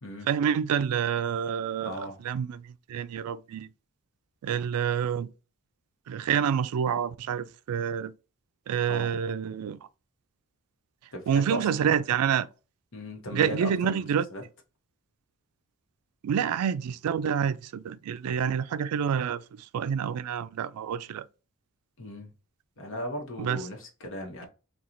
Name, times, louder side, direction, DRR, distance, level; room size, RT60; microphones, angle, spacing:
voice 1, 0.3-3.7 4.4-5.3 6.1-8.1 8.7-9.8 11.3-12.5 13.3-14.3 16.2-21.3 23.4-23.6, right 8 dB, 85° right, 0.3 m, -28 dB
voice 2, 1.8-2.2 8.8-9.1 11.1-11.7 12.9-14.0 14.3-14.4 22.0-22.3 22.8-24.5, equal, 60° left, 1.0 m, -37 dB
3.8 x 2.3 x 2.9 m
head